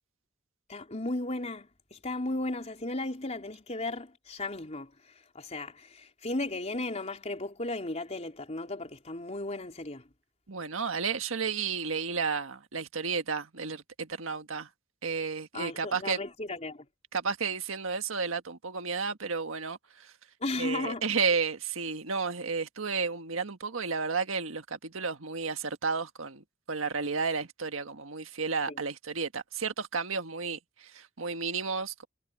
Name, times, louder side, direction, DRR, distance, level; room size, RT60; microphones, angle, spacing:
voice 1, 0.7-10.1 15.5-16.9 20.4-21.1 28.7-28.8, left 2 dB, 35° left, 3.8 m, -35 dB
voice 2, 10.5-14.7 15.0-16.2 17.1-20.1 20.6-32.1, right 5 dB, 80° right, 1.6 m, -32 dB
head